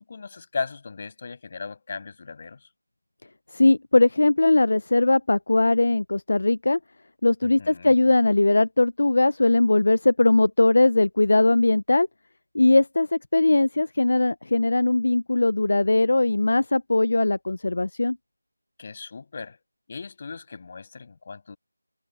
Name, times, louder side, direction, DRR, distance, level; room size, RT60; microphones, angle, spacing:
voice 1, 0.1-2.7 7.4-7.9 18.8-19.6 19.9-21.6, left 4 dB, 25° left, 6.4 m, -36 dB
voice 2, 3.5-6.8 7.2-12.1 12.5-18.2, left 2 dB, 50° left, 0.4 m, -20 dB
figure-of-eight pair, 175°, 0 cm